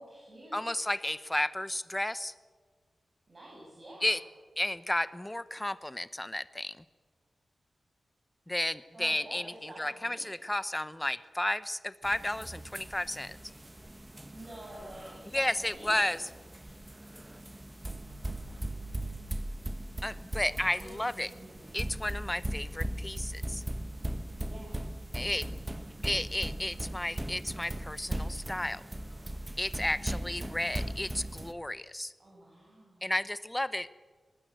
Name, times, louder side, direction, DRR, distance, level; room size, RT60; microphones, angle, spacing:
voice 1, 0.0-0.7 3.3-4.2 8.9-10.3 14.3-15.4 15.7-16.1 20.5-21.9 24.4-24.9 32.2-33.1, right 1 dB, 45° right, -2 dB, 7.5 m, -49 dB
voice 2, 0.5-2.3 4.0-4.2 4.6-6.8 8.5-13.4 15.3-16.2 20.0-21.3 21.7-23.6 25.1-25.5 26.0-28.8 29.6-32.1 33.0-33.9, left 1 dB, 15° left, 15 dB, 0.9 m, -33 dB
sound 1, 12.0-31.5, right 1 dB, 15° right, 1.4 m, -39 dB
22.5 x 19.0 x 8.0 m, 1.5 s
wide cardioid pair, 75°, 0 cm